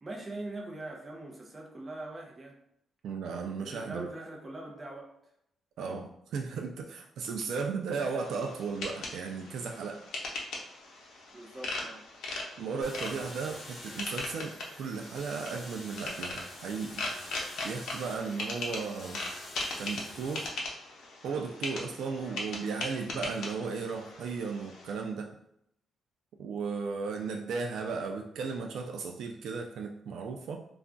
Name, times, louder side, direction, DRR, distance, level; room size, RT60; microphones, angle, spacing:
voice 1, 0.0-2.6 3.6-5.1 5.8-6.0 11.3-12.1, right 2 dB, 20° right, 0 dB, 0.6 m, -42 dB
voice 2, 3.0-4.1 5.8-10.0 12.6-14.5 14.8-17.0 17.6-19.2 19.8-20.5 21.2-25.3 26.4-30.6, right 5 dB, 75° right, 3 dB, 0.3 m, -35 dB
sound 1, 8.2-24.9, left 2 dB, 80° left, 0.7 m, -40 dB
sound 2, 12.8-20.5, left 1 dB, 35° left, 0.9 m, -47 dB
2.3 x 2.2 x 3.7 m, 0.74 s
cardioid pair, 150°, 0 cm